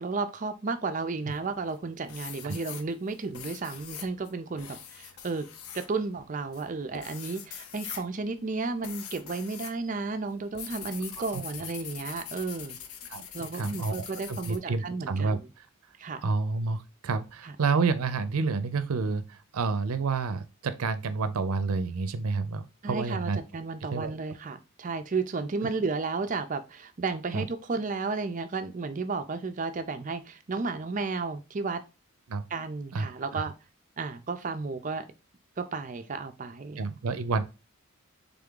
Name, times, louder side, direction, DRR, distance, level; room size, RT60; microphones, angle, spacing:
voice 1, 0.0-5.5 5.7-12.8 13.3-15.4 16.0-16.2 17.4-17.5 22.8-31.8 32.5-33.5 34.0-35.1 35.6-36.8, right 4 dB, 35° right, 0.4 m, -33 dB
sound 1, 1.3-1.8 2.1-9.8 10.1-14.6, left 8 dB, 80° left, 0.6 m, -43 dB
voice 2, 13.1-15.7 16.2-23.4 23.9-24.1 27.3-27.4 32.3-32.4 32.9-33.1 33.3-33.4 36.8-37.4, right 4 dB, 85° right, 0.5 m, -29 dB
3.6 x 3.5 x 3.7 m
head